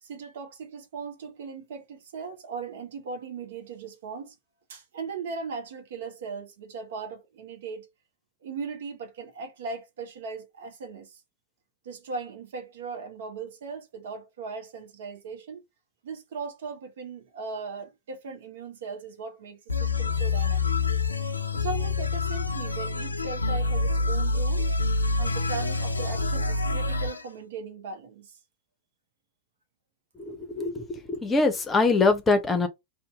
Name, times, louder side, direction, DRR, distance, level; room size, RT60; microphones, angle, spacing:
voice 1, 0.0-4.4 4.7-7.9 8.4-11.2 11.8-15.6 16.0-20.7 21.5-24.7 25.2-28.4, right 5 dB, 60° right, 0.7 m, -38 dB
sound 1, 19.7-27.2, left 3 dB, 80° left, 0.4 m, -27 dB
voice 2, 30.2-32.7, left 3 dB, 15° left, 0.7 m, -24 dB
2.7 x 2.1 x 2.9 m
figure-of-eight pair, 90°, 0 cm